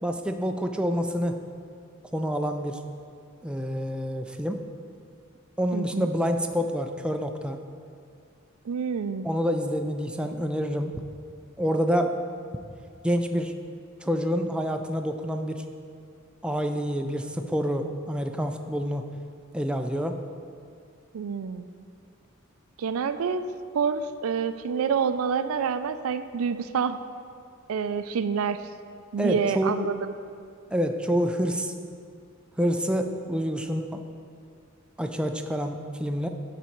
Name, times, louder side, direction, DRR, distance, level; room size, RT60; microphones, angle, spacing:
voice 1, 0.0-1.4 2.1-2.8 3.4-4.6 5.6-7.6 9.2-11.0 11.6-12.2 13.0-13.5 14.0-15.6 16.4-19.1 19.5-20.2 29.2-29.9 30.7-31.7 32.6-34.0 35.0-36.3, equal, 5° right, 5 dB, 0.4 m, -27 dB
voice 2, 5.7-6.1 8.6-9.3 21.1-21.7 22.8-23.4 23.7-27.0 27.7-28.7 29.1-29.9, right 6 dB, 85° right, 11 dB, 0.4 m, -27 dB
12.5 x 4.1 x 4.5 m, 2.3 s
head